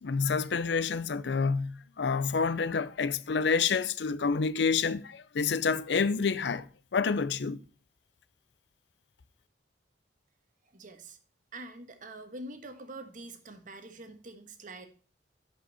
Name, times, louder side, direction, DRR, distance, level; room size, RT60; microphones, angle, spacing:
voice 1, 0.0-7.6, left 5 dB, 70° left, 0.5 m, -28 dB
voice 2, 10.7-11.2 11.5-14.9, right 2 dB, 45° right, 1.3 m, -45 dB
11.0 x 5.5 x 4.1 m
head